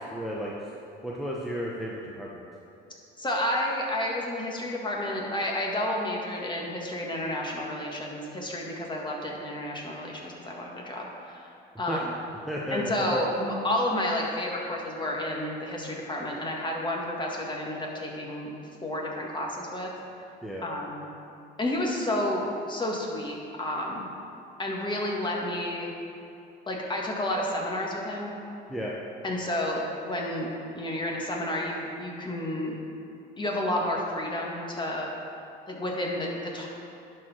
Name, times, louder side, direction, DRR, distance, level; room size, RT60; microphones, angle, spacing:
voice 1, 0.1-0.5 1.0-2.4 11.9-12.0 12.5-13.2 20.4-20.7 28.7-28.9, equal, ahead, -5 dB, 0.9 m, -33 dB
voice 2, 3.2-11.4 11.8-12.1 12.7-18.5 18.8-19.9 20.6-21.0 21.6-24.1 24.6-25.9 26.7-28.3 29.2-32.7 33.4-35.1 35.7-36.7, left 1 dB, 20° left, -2 dB, 1.8 m, -30 dB
11.0 x 4.6 x 4.4 m, 2.8 s
supercardioid pair, 80°, 21 cm